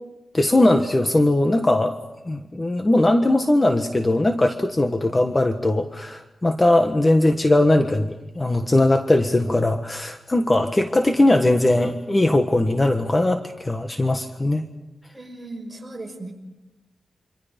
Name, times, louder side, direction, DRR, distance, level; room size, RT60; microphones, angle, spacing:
voice 1, 0.3-2.0 2.3-14.6, left 1 dB, 25° left, 6 dB, 1.4 m, -19 dB
voice 2, 15.1-16.3, right 2 dB, 25° right, 1 dB, 5.7 m, -37 dB
27.0 x 26.0 x 5.3 m, 1.0 s
wide cardioid pair, 85°, 0 cm